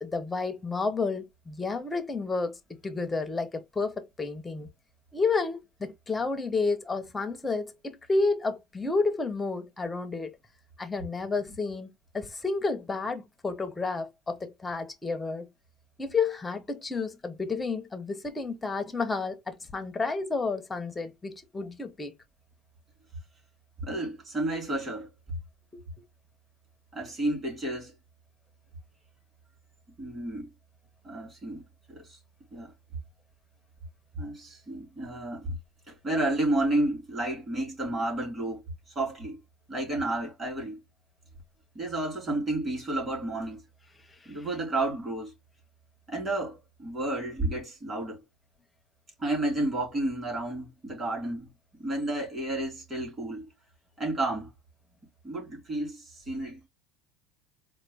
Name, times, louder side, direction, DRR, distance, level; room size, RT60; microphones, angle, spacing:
voice 1, 0.0-4.7 5.1-10.4 10.8-15.5 16.0-22.1 25.7-25.8 44.2-44.5, left 4 dB, 10° left, 0.7 m, -31 dB
voice 2, 23.8-25.1 26.9-27.9 30.0-30.5 31.0-31.6 31.9-32.2 32.5-32.7 34.2-35.5 35.9-39.4 39.7-40.8 41.7-43.6 44.2-45.3 46.1-48.2 49.2-53.5 54.0-54.5 55.2-56.6, right 2 dB, 20° right, 3.1 m, -31 dB
4.3 x 2.2 x 3.3 m
cardioid pair, 150°, 0 cm